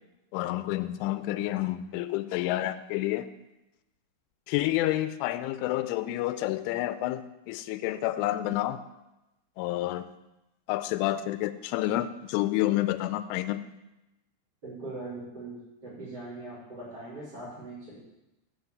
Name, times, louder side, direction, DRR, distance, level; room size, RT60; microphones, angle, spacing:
voice 1, 0.3-3.3 4.5-8.8 9.6-10.1 10.7-13.6, left 15 dB, 85° left, 12 dB, 3.0 m, -29 dB
voice 2, 14.6-15.6 15.8-18.0, right 2 dB, 25° right, -11 dB, 3.8 m, -40 dB
8.3 x 6.5 x 7.9 m, 0.96 s
omnidirectional pair, 5.5 m